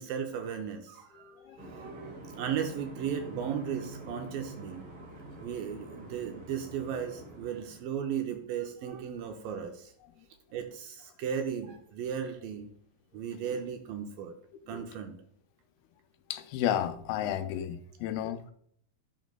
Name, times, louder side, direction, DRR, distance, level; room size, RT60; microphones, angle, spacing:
voice 1, 0.0-4.9 5.4-9.9 10.5-12.7 13.1-14.3 14.7-15.2, right 8 dB, 80° right, 2.2 m, -36 dB
voice 2, 1.2-1.6 14.7-14.8 16.3-18.5, left 11 dB, 85° left, 2.4 m, -32 dB
sound 1, 1.6-7.8, right 1 dB, 45° right, 2.0 m, -46 dB
9.1 x 6.1 x 2.2 m
omnidirectional pair, 4.4 m